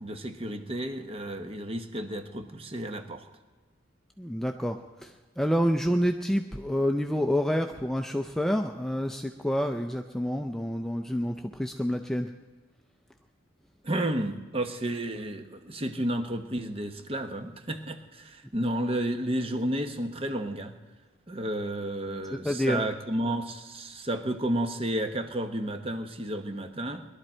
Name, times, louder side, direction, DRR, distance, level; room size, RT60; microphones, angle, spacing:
voice 1, 0.0-3.3 13.8-20.7 21.3-27.0, right 1 dB, 30° right, 7 dB, 0.9 m, -32 dB
voice 2, 4.2-12.3 22.4-22.8, equal, ahead, 5 dB, 0.4 m, -28 dB
21.5 x 12.0 x 4.4 m, 1.4 s
head